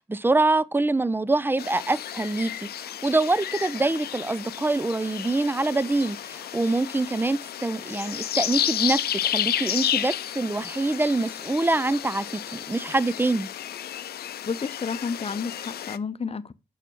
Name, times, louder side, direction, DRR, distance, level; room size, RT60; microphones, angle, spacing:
voice 1, 0.1-13.5, right 2 dB, 15° right, 0.5 m, -25 dB
sound 1, 1.6-16.0, left 11 dB, 75° left, 0.5 m, -32 dB
voice 2, 14.5-16.5, left 5 dB, 40° left, 0.8 m, -31 dB
6.7 x 5.8 x 6.1 m
supercardioid pair, 45°, 16 cm